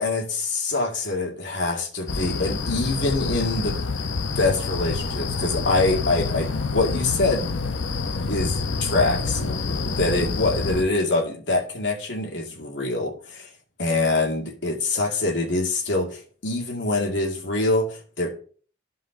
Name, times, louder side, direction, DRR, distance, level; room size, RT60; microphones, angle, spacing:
voice 1, 0.0-3.8 4.4-7.5 8.3-8.5 8.8-13.5 13.8-18.3, left 2 dB, 65° left, 1 dB, 2.1 m, -25 dB
sound 1, 2.1-10.8, left 4 dB, 80° left, 0.8 m, -27 dB
12.0 x 5.4 x 3.9 m, 0.43 s
head